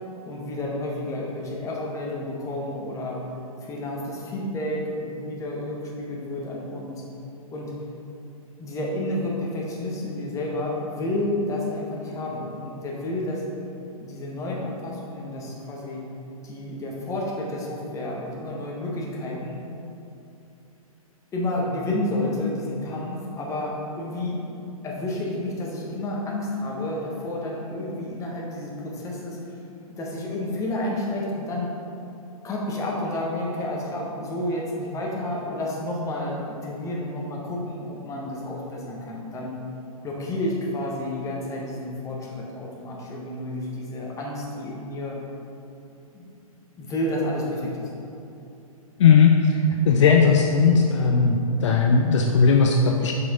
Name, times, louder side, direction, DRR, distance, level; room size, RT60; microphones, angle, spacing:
voice 1, 0.2-3.2 3.6-7.0 7.5-7.7 8.6-13.4 14.0-16.0 16.4-19.6 21.3-24.4 24.8-29.6 29.9-31.7 32.4-39.5 40.0-45.2 46.1-46.3 46.8-47.9, left 1 dB, 15° left, -3 dB, 1.4 m, -30 dB
voice 2, 49.0-49.4 49.9-51.4 51.6-53.1, left 5 dB, 55° left, 2 dB, 0.6 m, -17 dB
7.5 x 5.9 x 3.9 m, 2.7 s
figure-of-eight pair, 120°, 19 cm